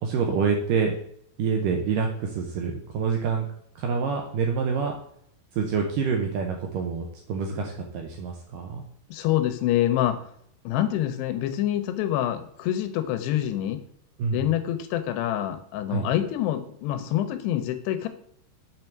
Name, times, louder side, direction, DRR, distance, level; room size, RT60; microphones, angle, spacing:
voice 1, 0.0-1.0 1.4-3.5 3.8-4.9 5.5-8.8 14.2-14.5 15.9-16.1, right 5 dB, 80° right, 2 dB, 2.0 m, -27 dB
voice 2, 9.1-10.2 10.6-13.8 14.3-18.1, left 12 dB, 85° left, 10 dB, 2.8 m, -26 dB
6.7 x 5.9 x 4.5 m, 0.66 s
omnidirectional pair, 4.7 m